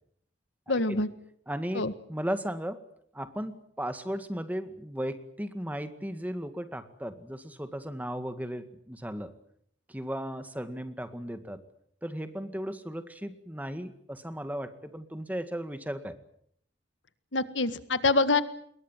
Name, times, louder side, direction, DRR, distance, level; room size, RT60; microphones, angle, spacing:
voice 1, 0.7-1.1 1.7-1.9 17.3-18.4, left 3 dB, 85° left, 12 dB, 1.7 m, -25 dB
voice 2, 1.5-2.8 3.1-9.3 9.9-11.6 12.0-16.2, equal, 10° right, 9 dB, 1.9 m, -36 dB
26.5 x 22.5 x 7.5 m, 0.69 s
head